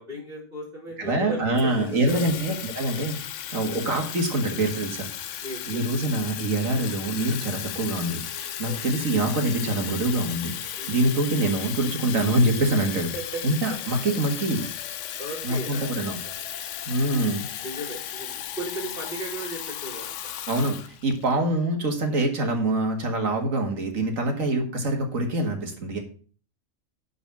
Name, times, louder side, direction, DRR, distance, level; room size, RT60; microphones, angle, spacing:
voice 1, 0.0-2.4 5.4-5.8 8.6-9.0 10.8-11.0 13.1-13.4 15.2-16.1 17.6-20.3 22.1-22.2 24.3-24.6, right 1 dB, 40° right, -6 dB, 3.9 m, -37 dB
voice 2, 1.0-3.2 3.5-5.1 5.7-13.1 13.4-14.7 15.4-16.2 16.9-17.4 20.5-26.0, right 2 dB, 75° right, 3 dB, 2.4 m, -25 dB
Water tap faucet / Fill (with liquid), 1.6-21.3, left 10 dB, 65° left, 1.0 m, -35 dB
10.5 x 4.2 x 7.2 m, 0.41 s
omnidirectional pair, 1.4 m